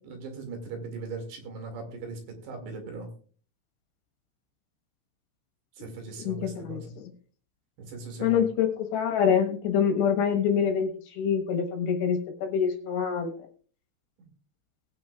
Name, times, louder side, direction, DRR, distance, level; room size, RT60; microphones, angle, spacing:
voice 1, 0.0-3.1 5.8-7.0 7.8-8.4, right 3 dB, 70° right, 4 dB, 4.3 m, -39 dB
voice 2, 6.2-7.1 8.2-13.5, left 7 dB, 70° left, 4 dB, 3.3 m, -26 dB
20.0 x 9.3 x 2.4 m, 0.43 s
omnidirectional pair, 5.4 m